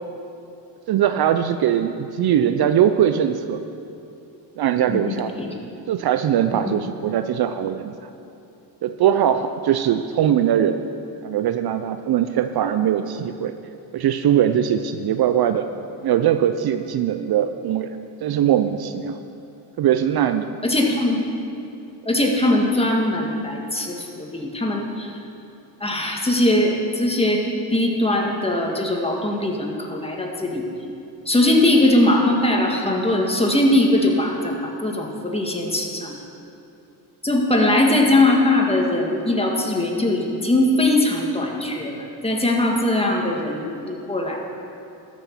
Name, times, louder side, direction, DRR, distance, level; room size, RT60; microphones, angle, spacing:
voice 1, 0.9-3.6 4.6-5.4 5.9-8.1 8.8-10.9 11.2-13.5 13.9-15.6 16.0-17.9 18.2-19.2 19.8-20.5, right 10 dB, 55° right, 9 dB, 0.6 m, -21 dB
voice 2, 4.9-5.5 6.7-6.8 20.6-21.2 22.1-25.2 25.8-27.4 27.7-30.6 31.3-36.1 37.2-44.4, left 1 dB, 15° left, 0 dB, 1.8 m, -20 dB
13.5 x 6.3 x 5.9 m, 2.8 s
supercardioid pair, 70°, 45 cm